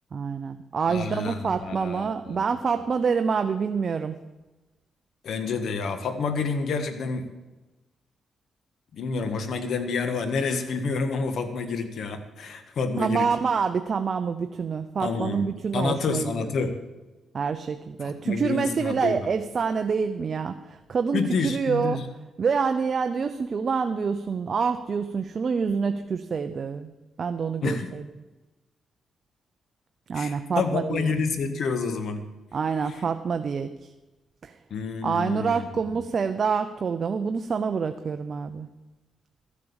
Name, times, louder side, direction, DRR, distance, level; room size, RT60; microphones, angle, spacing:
voice 1, 0.1-4.2 13.0-16.5 17.3-22.0 22.4-26.9 27.2-28.0 30.1-31.1 32.5-33.9 34.4-34.6 35.0-38.7, right 5 dB, 45° right, 8 dB, 0.7 m, -27 dB
voice 2, 0.9-2.4 5.2-7.3 8.9-13.3 15.0-15.5 15.7-16.8 18.0-19.1 21.1-22.0 27.6-27.9 30.1-32.2 34.7-35.7, left 4 dB, 70° left, 8 dB, 1.6 m, -28 dB
13.5 x 8.4 x 7.0 m, 1.1 s
cardioid pair, 100°, 0 cm